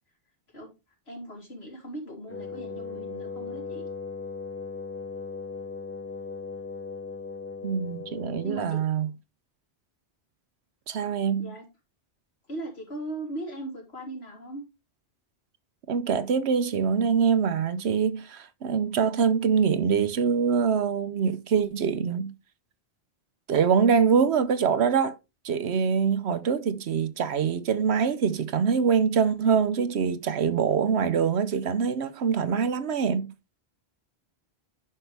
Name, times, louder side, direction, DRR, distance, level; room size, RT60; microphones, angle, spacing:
voice 1, 1.1-3.8 8.4-8.8 11.4-11.7 12.5-14.6, right 1 dB, 70° left, 3.3 m, -38 dB
Wind instrument woodwind instrument, 2.3-8.9, left 4 dB, 20° left, 0.4 m, -38 dB
voice 2, 7.6-9.1 10.9-11.5 15.9-22.3 23.5-25.1 25.4-33.3, right 6 dB, 75° right, 1.0 m, -24 dB
9.9 x 5.6 x 3.4 m
omnidirectional pair, 1.1 m